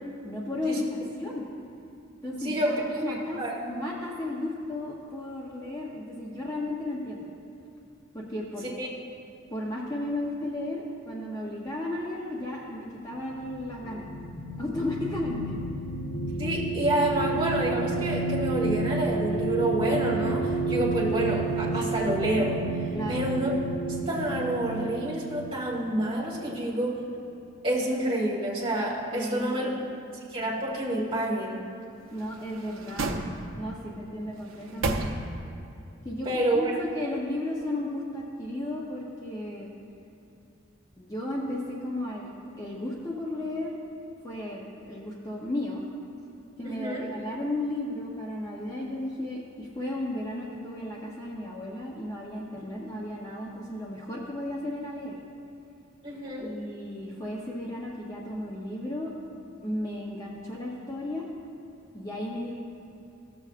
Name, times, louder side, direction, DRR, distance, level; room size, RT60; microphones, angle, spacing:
voice 1, 0.2-1.5 2.2-7.3 8.1-8.6 9.5-14.1 14.6-15.6 22.9-23.2 29.1-29.8 32.1-33.1 33.6-35.0 36.0-39.7 41.0-43.8 44.2-45.8 46.6-55.2 56.4-59.1 59.6-61.3 61.9-62.6, left 1 dB, 15° left, -4 dB, 0.7 m, -34 dB
voice 2, 2.4-2.7 3.4-3.5 8.8-8.9 16.4-22.6 23.1-23.5 24.1-27.0 27.6-29.7 30.3-31.6 36.3-36.6 46.6-47.1 56.0-56.5, right 1 dB, 25° right, -5 dB, 1.7 m, -28 dB
sound 1, 13.1-26.8, right 3 dB, 80° left, 0.7 m, -31 dB
sound 2, 32.1-33.8 34.3-35.6 36.0-36.1, right 2 dB, 85° right, 0.7 m, -33 dB
15.5 x 6.9 x 2.4 m, 2.7 s
head